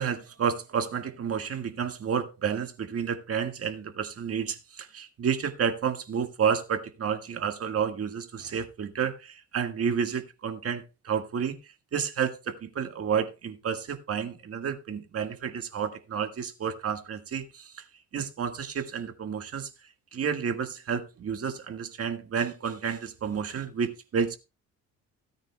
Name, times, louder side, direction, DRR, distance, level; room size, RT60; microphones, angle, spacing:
voice 1, 0.0-11.6 11.9-17.8 18.1-19.7 20.1-24.4, right 7 dB, 50° right, 1.7 m, -30 dB
17.0 x 9.0 x 2.3 m
cardioid pair, 90°, 30 cm